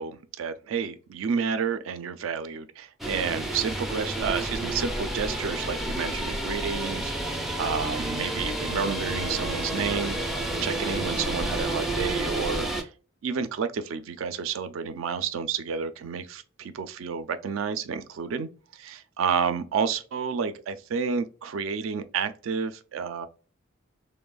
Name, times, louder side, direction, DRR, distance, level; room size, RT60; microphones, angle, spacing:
voice 1, 0.0-10.2 10.6-12.9 13.2-23.3, right 6 dB, 75° right, 0.4 m, -30 dB
sound 1, 3.0-12.8, right 1 dB, ahead, 0.3 m, -30 dB
3.0 x 2.0 x 2.2 m
head